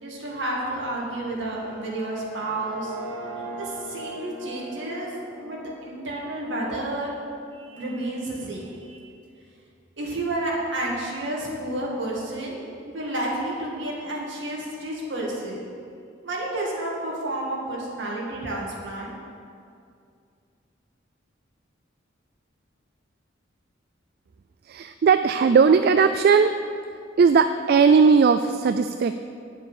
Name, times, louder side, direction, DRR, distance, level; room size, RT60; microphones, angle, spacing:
voice 1, 0.0-2.9 3.6-5.1 5.4-7.1 7.5-9.0 10.0-15.6 16.2-19.1, right 1 dB, 70° right, -3 dB, 2.3 m, -30 dB
sound 1, 1.4-7.3, right 2 dB, 55° left, 3.0 m, -40 dB
voice 2, 24.7-26.5 27.2-29.2, right 5 dB, 50° right, 9 dB, 0.3 m, -18 dB
9.3 x 7.3 x 6.5 m, 2.4 s
head